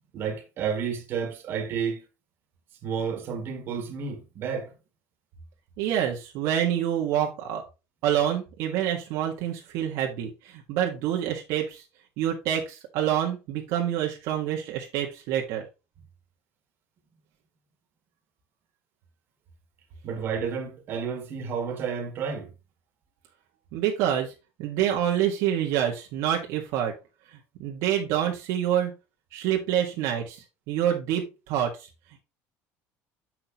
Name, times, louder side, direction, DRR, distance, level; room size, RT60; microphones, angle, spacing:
voice 1, 0.1-2.0 2.8-4.7 20.0-22.5, right 6 dB, 40° right, 2.1 m, -31 dB
voice 2, 5.8-7.6 8.0-11.8 12.2-15.6 23.7-24.3 24.6-26.9 27.3-28.9 29.3-31.7, right 10 dB, 65° right, 1.5 m, -27 dB
7.6 x 6.1 x 2.9 m
cardioid pair, 150°, 6 cm